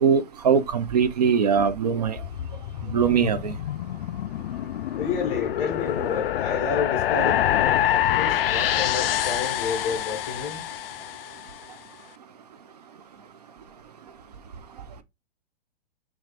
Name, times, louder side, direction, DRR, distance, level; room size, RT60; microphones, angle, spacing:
voice 1, 0.0-2.2 2.9-3.5, right 7 dB, 40° right, 0.5 m, -21 dB
sound 1, 2.2-11.5, left 11 dB, 65° left, 0.4 m, -26 dB
voice 2, 5.0-10.6, left 5 dB, 10° left, 0.6 m, -30 dB
6.2 x 2.5 x 3.3 m
hypercardioid pair, 180°, 31 cm